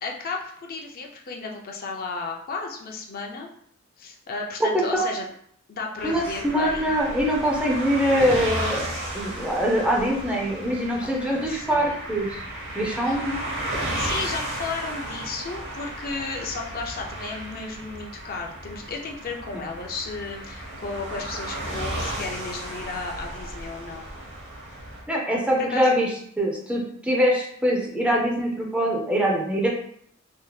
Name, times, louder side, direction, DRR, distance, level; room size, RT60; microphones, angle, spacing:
voice 1, 0.0-3.5 4.0-5.3 5.7-6.9 11.2-12.0 13.0-13.2 14.0-24.1 25.6-25.9, left 4 dB, 45° left, 1 dB, 0.5 m, -34 dB
voice 2, 4.6-5.1 6.0-12.4 12.7-13.4 19.5-19.7 25.1-29.7, equal, 5° right, -2 dB, 0.5 m, -23 dB
sound 1, 6.0-25.0, right 1 dB, 65° right, 0.9 m, -34 dB
3.6 x 2.7 x 2.3 m, 0.64 s
head